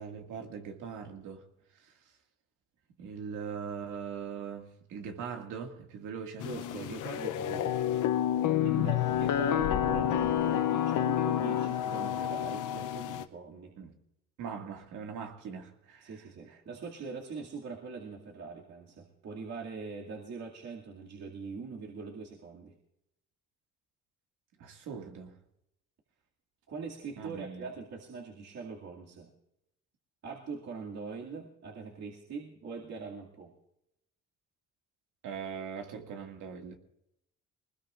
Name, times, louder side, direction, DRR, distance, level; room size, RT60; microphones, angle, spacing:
voice 1, 0.0-1.5 1.8-1.9 3.0-6.5 13.8-13.9 14.4-16.6 24.6-25.4 27.2-27.7 35.2-36.8, right 6 dB, 85° right, 2.1 m, -41 dB
sound 1, 6.4-13.2, left 11 dB, 80° left, 0.7 m, -29 dB
voice 2, 6.4-8.0 8.6-13.7 16.0-22.7 26.7-29.3 30.2-33.5, right 4 dB, 60° right, 2.4 m, -42 dB
21.5 x 19.5 x 2.5 m
cardioid pair, 90°, 30 cm